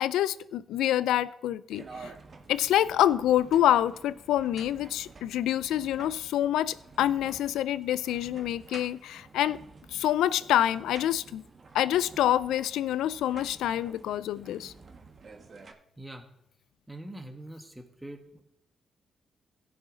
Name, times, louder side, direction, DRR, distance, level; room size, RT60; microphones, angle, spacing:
voice 1, 0.0-2.1 2.5-9.6 9.9-11.4 11.7-14.7, left 12 dB, 85° left, 17 dB, 0.4 m, -26 dB
sound 1, 1.7-15.7, right 4 dB, 50° right, 1.4 m, -50 dB
voice 2, 16.0-16.3 16.9-18.4, right 1 dB, 10° right, 4 dB, 1.7 m, -43 dB
16.5 x 6.7 x 4.0 m, 0.84 s
supercardioid pair, 55°, 0 cm